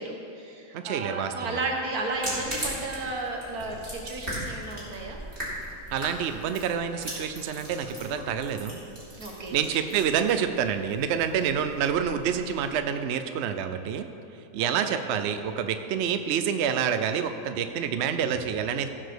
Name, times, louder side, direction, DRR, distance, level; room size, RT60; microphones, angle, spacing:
voice 1, 0.0-5.2 9.2-9.6 14.6-15.0, right 2 dB, 85° right, 0 dB, 1.8 m, -33 dB
voice 2, 0.7-1.6 5.9-8.8 9.5-14.1 14.5-18.9, right 8 dB, 60° right, 8 dB, 0.7 m, -28 dB
sound 1, 2.0-12.8, right 1 dB, 35° right, 3.1 m, -39 dB
15.0 x 5.1 x 6.1 m, 2.7 s
omnidirectional pair, 1.5 m